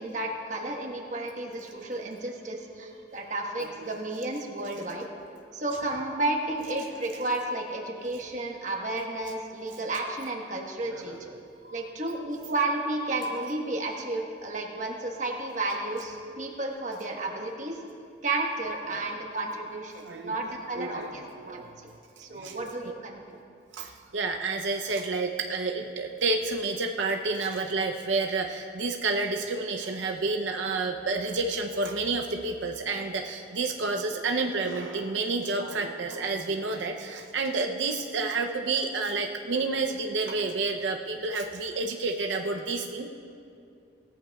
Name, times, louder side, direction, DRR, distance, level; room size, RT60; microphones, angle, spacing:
voice 1, 0.0-5.1 5.5-11.2 11.7-17.8 18.2-21.7 22.2-23.2, right 2 dB, 40° right, 0 dB, 1.3 m, -32 dB
voice 2, 3.6-3.9 10.9-11.8 18.9-19.0 20.0-20.3 20.8-21.2 21.4-21.9 22.3-22.7 23.7-43.1, right 3 dB, 85° right, 3 dB, 0.7 m, -30 dB
18.0 x 13.5 x 2.3 m, 2.5 s
head